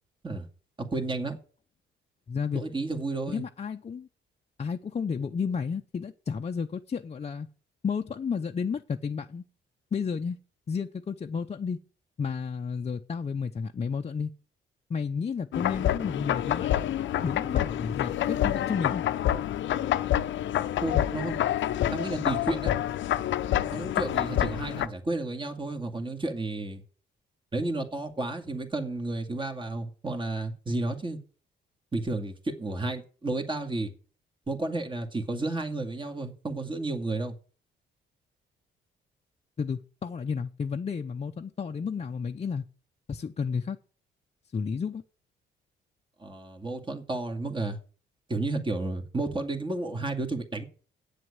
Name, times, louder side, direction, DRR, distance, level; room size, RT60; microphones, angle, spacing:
voice 1, 0.8-1.4 2.5-3.4 20.8-21.4 21.9-22.7 23.7-26.8 27.5-31.2 31.9-33.9 34.5-37.3 46.2-47.8 48.3-50.6, right 2 dB, 25° right, 2.2 m, -32 dB
voice 2, 2.3-2.6 3.3-4.1 4.6-7.5 7.8-9.4 9.9-10.4 10.7-11.8 12.2-14.3 14.9-16.9 17.2-19.0 39.6-42.6 43.1-43.8 44.5-45.0, left 6 dB, 35° left, 0.7 m, -32 dB
sound 1, 15.5-24.9, left 11 dB, 70° left, 0.7 m, -27 dB
8.6 x 7.7 x 8.0 m
cardioid pair, 90°, 20 cm